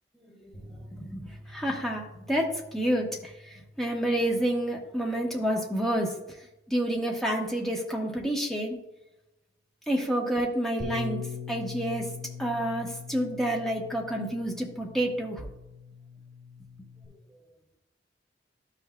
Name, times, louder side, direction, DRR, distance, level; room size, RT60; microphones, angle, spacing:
voice 1, 0.2-6.2 6.7-8.8 9.9-12.1 12.4-15.5, right 1 dB, ahead, -1 dB, 1.2 m, -29 dB
sound 1, 0.5-7.6 7.9-8.0 8.3-8.4, equal, 35° left, 1.5 m, -51 dB
Bass guitar, 10.8-17.0, left 4 dB, 60° right, 1.7 m, -41 dB
12.5 x 5.9 x 2.3 m, 0.92 s
head